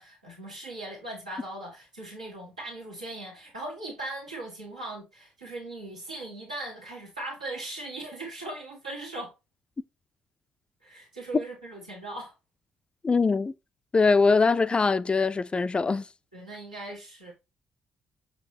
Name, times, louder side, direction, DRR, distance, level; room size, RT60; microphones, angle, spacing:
voice 1, 0.0-9.3 10.8-12.3 16.3-17.3, right 2 dB, 85° right, 1.8 m, -39 dB
voice 2, 13.0-13.5 13.9-16.0, left 4 dB, 25° left, 0.3 m, -22 dB
7.0 x 5.1 x 3.3 m
figure-of-eight pair, 40°, 4 cm